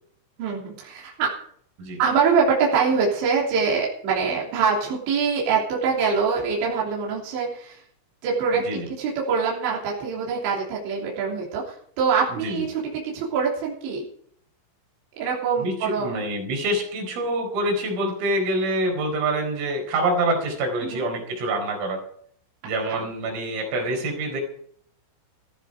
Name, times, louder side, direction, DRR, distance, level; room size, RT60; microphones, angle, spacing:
voice 1, 0.4-1.3 2.0-7.8 8.2-8.6 9.0-14.1 15.2-16.2 20.8-21.1 22.9-23.1, right 5 dB, 65° right, -4 dB, 5.4 m, -24 dB
voice 2, 12.3-12.6 15.6-22.0 22.6-24.4, right 1 dB, 85° right, 2 dB, 7.0 m, -26 dB
15.5 x 15.0 x 4.9 m, 0.62 s
omnidirectional pair, 5.7 m